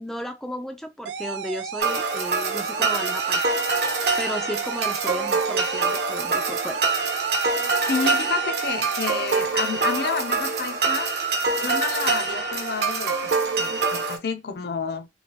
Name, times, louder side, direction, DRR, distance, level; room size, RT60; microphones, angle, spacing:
voice 1, 0.0-3.4 4.2-6.8, equal, ahead, 0.3 m, -34 dB
sound 1, 1.0-9.1, right 6 dB, 80° right, 0.3 m, -33 dB
sound 2, 1.8-14.2, right 4 dB, 65° right, 0.9 m, -25 dB
voice 2, 7.9-11.1 11.5-13.3 13.6-15.1, left 5 dB, 60° left, 0.5 m, -29 dB
3.2 x 2.7 x 2.9 m
head